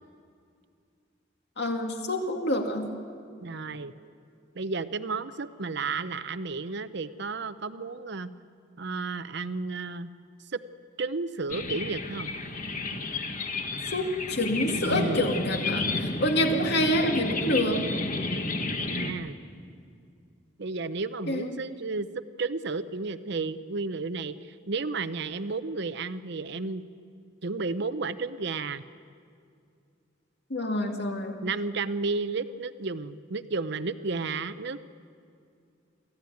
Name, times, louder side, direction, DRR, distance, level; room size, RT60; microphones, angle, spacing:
voice 1, 1.6-2.9 13.9-17.9 21.3-21.6 30.5-31.4, left 1 dB, 60° left, 3 dB, 2.5 m, -27 dB
voice 2, 3.4-3.9 4.5-8.3 8.8-10.1 10.5-10.6 11.0-12.3 14.9-15.3 19.0-19.4 20.6-22.1 22.4-26.8 27.4-28.8 31.4-34.8, right 3 dB, 65° right, 12 dB, 0.8 m, -32 dB
sound 1, 11.5-19.1, left 3 dB, 45° left, 1.6 m, -31 dB
24.5 x 15.0 x 9.4 m, 2.4 s
head